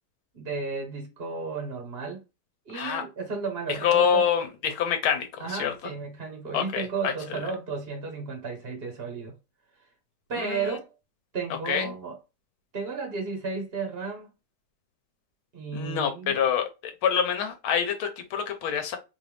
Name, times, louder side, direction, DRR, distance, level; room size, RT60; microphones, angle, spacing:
voice 1, 0.3-2.2 2.7-4.3 5.4-9.3 10.3-10.9 11.3-12.2 12.7-14.3 15.5-16.4, right 4 dB, 35° right, 1.0 m, -33 dB
voice 2, 3.7-5.7 6.5-7.4 10.3-10.8 11.5-11.9 15.7-19.0, left 7 dB, 75° left, 1.7 m, -26 dB
4.4 x 2.6 x 3.3 m
omnidirectional pair, 2.4 m